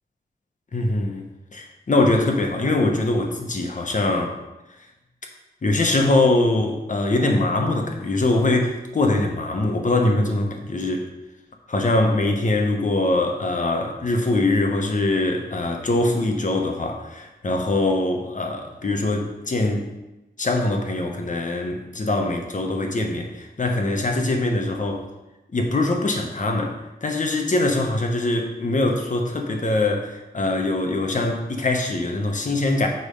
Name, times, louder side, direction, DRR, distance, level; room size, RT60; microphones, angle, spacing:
voice 1, 0.7-1.2 1.5-4.4 5.6-11.0 11.7-19.9 20.4-25.1 25.5-26.8 27.0-32.9, left 2 dB, 45° left, 3 dB, 1.0 m, -22 dB
6.6 x 4.4 x 5.3 m, 1.0 s
wide cardioid pair, 125°, 18 cm